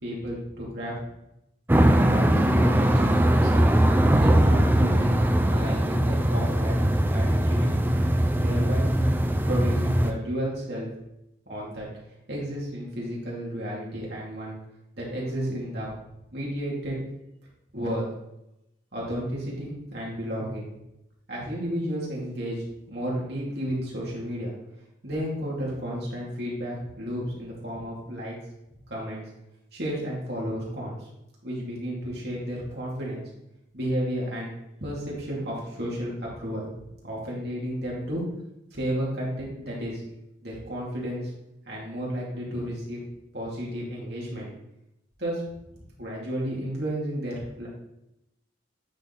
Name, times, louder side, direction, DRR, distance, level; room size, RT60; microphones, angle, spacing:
voice 1, 0.0-0.9 1.8-3.7 4.2-7.7 8.4-8.9 9.4-10.9 11.5-11.9 12.3-14.6 15.0-15.9 16.3-17.0 17.7-18.1 18.9-20.7 21.3-24.5 25.0-28.4 28.9-29.2 29.7-31.0 31.4-33.2 33.7-34.5 34.8-38.2 38.7-40.0 40.4-41.3 41.7-43.0 43.3-44.5 45.2-45.4 46.0-47.7, equal, 60° right, -5 dB, 2.7 m, -32 dB
sound 1, 1.7-10.1, right 1 dB, 10° right, 0.4 m, -21 dB
8.9 x 4.0 x 4.0 m, 0.86 s
head